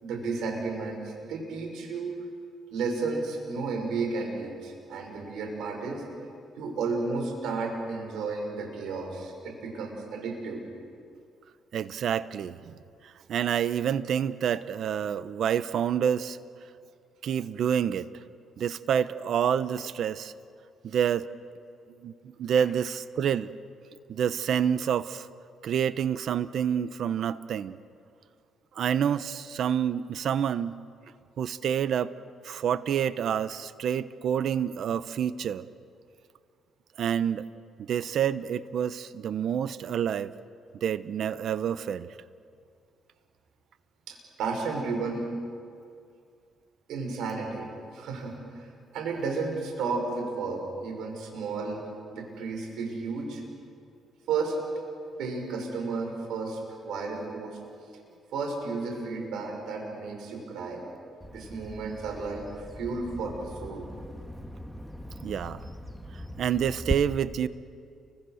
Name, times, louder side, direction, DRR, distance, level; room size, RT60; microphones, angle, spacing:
voice 1, 0.0-2.1 2.7-6.0 6.6-10.6 44.1-45.3 46.9-48.7 48.9-51.8 52.1-53.4 54.3-54.6 55.2-57.6 58.3-60.8 61.3-63.9, right 4 dB, 85° right, 1 dB, 5.5 m, -33 dB
voice 2, 11.7-12.7 13.0-16.4 17.2-18.1 18.6-20.3 20.8-21.3 22.0-23.5 24.1-25.3 25.6-27.8 28.8-30.8 31.4-32.1 32.4-35.7 37.0-37.4 37.8-40.3 40.8-42.1 65.2-65.6 66.4-67.5, right 8 dB, 65° right, 14 dB, 1.0 m, -28 dB
Bird vocalization bird call bird song, 61.2-66.9, equal, ahead, 1.7 m, -39 dB
30.0 x 24.5 x 6.5 m, 2.3 s
cardioid pair, 90°, 0 cm